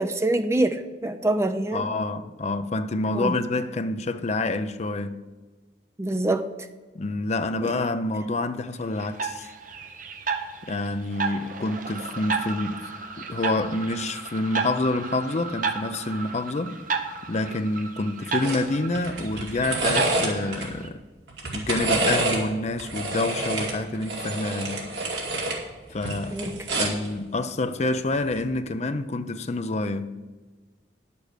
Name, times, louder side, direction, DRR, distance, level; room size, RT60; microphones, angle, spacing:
voice 1, 0.0-1.9 3.1-3.3 6.0-6.5 7.6-7.8 26.3-26.5, right 1 dB, 15° right, 0.6 m, -25 dB
voice 2, 1.7-5.2 6.9-9.5 10.6-12.9 13.2-16.8 17.2-21.0 21.5-24.9 25.9-26.4 26.8-30.2, left 2 dB, 40° left, 0.5 m, -27 dB
sound 1, 9.0-20.9, right 5 dB, 50° right, 0.9 m, -33 dB
sound 2, 18.4-18.6 19.0-20.7 21.3-22.4 22.8-25.6 25.9-27.1 28.2-28.4, right 2 dB, 70° right, 2.5 m, -27 dB
10.5 x 6.8 x 6.6 m
head